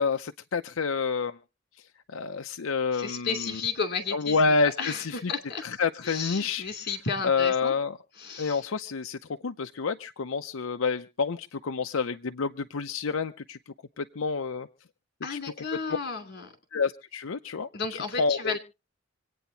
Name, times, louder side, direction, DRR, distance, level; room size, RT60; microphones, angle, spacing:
voice 1, 0.0-1.4 2.1-3.6 4.1-5.3 5.6-6.7 7.2-8.0 8.4-13.6 14.0-14.7 15.3-15.4 15.9-16.0 16.7-18.6, left 4 dB, 90° left, 7 dB, 0.6 m, -28 dB
voice 2, 2.9-4.4 4.8-5.6 6.0-7.7 8.2-8.6 15.2-16.5 17.7-18.6, left 5 dB, 50° left, 5 dB, 2.7 m, -33 dB
26.0 x 9.2 x 2.8 m, 0.31 s
head